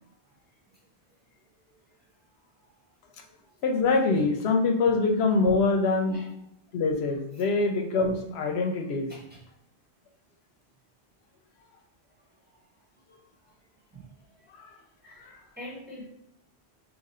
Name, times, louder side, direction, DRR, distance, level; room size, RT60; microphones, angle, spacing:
voice 1, 3.6-6.2 6.7-9.1, left 3 dB, 80° left, 3 dB, 0.8 m, -24 dB
voice 2, 15.0-16.1, left 1 dB, 10° right, -5 dB, 1.0 m, -44 dB
2.8 x 2.5 x 4.1 m, 0.74 s
omnidirectional pair, 1.1 m